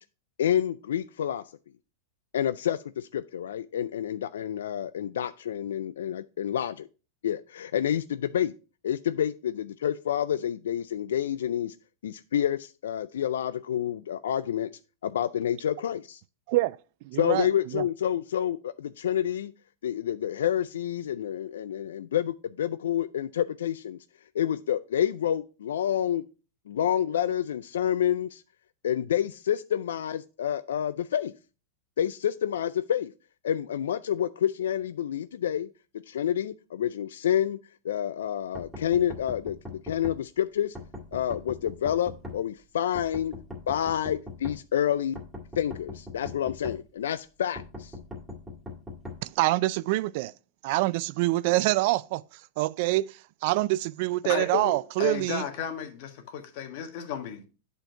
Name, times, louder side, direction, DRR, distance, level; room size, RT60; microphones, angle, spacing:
voice 1, 0.4-1.4 2.3-6.9 7.2-8.5 8.8-11.7 12.0-14.7 15.0-16.2 17.2-19.5 19.8-24.0 24.3-26.2 26.7-28.4 28.8-31.3 32.0-33.1 33.4-35.7 36.1-37.6 37.8-40.8 41.1-43.3 43.7-45.2 45.6-47.9, left 10 dB, 85° left, 0.3 m, -28 dB
voice 2, 17.0-17.8 49.2-50.3 50.6-52.2 52.6-55.4, right 18 dB, 60° right, 0.3 m, -26 dB
sound 1, 38.6-40.2 40.8-42.4 43.0-44.6 45.2-46.8 47.6-49.2, left 2 dB, 10° right, 2.2 m, -40 dB
voice 3, 54.3-57.5, left 9 dB, 60° left, 1.6 m, -34 dB
7.9 x 4.4 x 4.6 m
hypercardioid pair, 120°, 0 cm